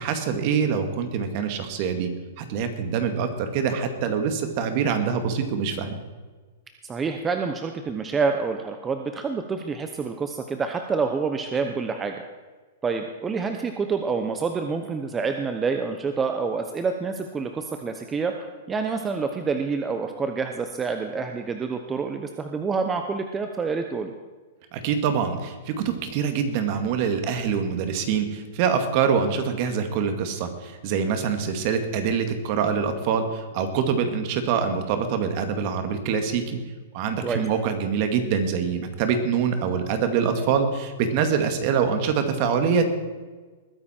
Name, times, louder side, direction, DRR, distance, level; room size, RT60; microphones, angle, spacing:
voice 1, 0.0-2.1 2.4-5.9 24.7-36.6 36.9-42.8, right 6 dB, 45° right, 7 dB, 2.0 m, -25 dB
voice 2, 6.8-12.2 12.8-24.1 37.2-37.4, right 5 dB, 15° right, 6 dB, 0.9 m, -27 dB
20.5 x 9.8 x 4.5 m, 1.4 s
hypercardioid pair, 145°, 0 cm